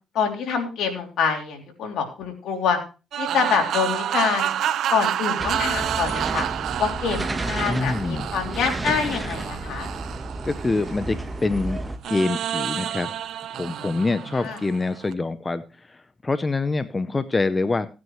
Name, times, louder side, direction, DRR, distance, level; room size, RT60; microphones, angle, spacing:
voice 1, 0.1-2.8 3.2-4.5 4.9-6.4 6.8-9.9 14.4-14.6, left 6 dB, 75° left, 3 dB, 3.2 m, -25 dB
sound 1, 3.1-11.4 12.0-15.1, right 10 dB, 75° right, 0.7 m, -29 dB
sound 2, 5.4-12.0, right 2 dB, 20° right, 1.3 m, -32 dB
voice 2, 7.7-8.3 10.4-11.8 12.1-13.1 13.5-17.9, left 3 dB, 25° left, 12 dB, 0.7 m, -25 dB
16.5 x 9.5 x 3.2 m, 0.31 s
cardioid pair, 90°, 0 cm